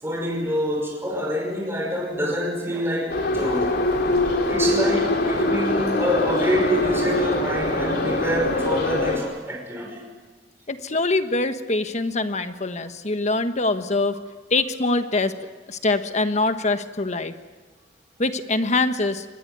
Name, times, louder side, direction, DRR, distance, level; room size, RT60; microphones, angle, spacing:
voice 1, 0.0-3.7 4.4-10.1, equal, 15° right, 5.5 m, -26 dB
Subway metro underground, 3.1-9.2, left 2 dB, 65° left, 3.6 m, -23 dB
voice 2, 10.7-14.1 14.5-17.3 18.2-19.2, left 2 dB, 40° left, 1.3 m, -24 dB
25.0 x 20.0 x 9.3 m
head